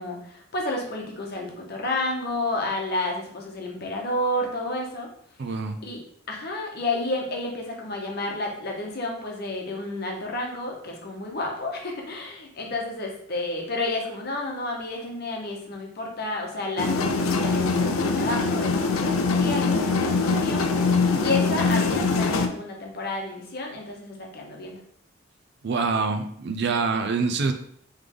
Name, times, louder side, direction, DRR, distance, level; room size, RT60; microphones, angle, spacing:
voice 1, 0.0-5.1 5.8-6.0 6.3-20.6 21.2-24.8, left 2 dB, 50° left, 0 dB, 0.9 m, -31 dB
voice 2, 5.4-5.8 25.6-27.5, right 4 dB, 55° right, 7 dB, 0.4 m, -25 dB
sound 1, 16.8-22.5, left 4 dB, 85° left, 0.5 m, -23 dB
3.4 x 3.2 x 3.8 m, 0.64 s
head